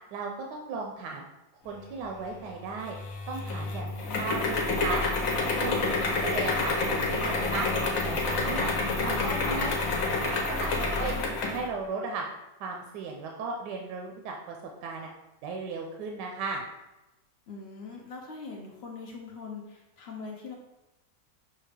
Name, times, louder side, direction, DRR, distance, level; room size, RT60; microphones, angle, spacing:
voice 1, 0.1-1.2 1.6-3.0 3.3-5.0 5.4-5.8 6.2-7.7 8.0-8.7 9.0-9.8 10.2-10.7 11.0-11.2 11.5-12.2 12.6-14.6 14.8-15.1 15.4-16.6, right 4 dB, 85° right, 1 dB, 1.2 m, -35 dB
sound 1, 2.8-11.7, left 3 dB, 60° left, 1.1 m, -28 dB
voice 2, 3.8-4.5 10.8-11.3 17.5-20.5, left 4 dB, 75° left, 0 dB, 0.5 m, -43 dB
5.7 x 2.7 x 3.2 m, 0.99 s
omnidirectional pair, 1.8 m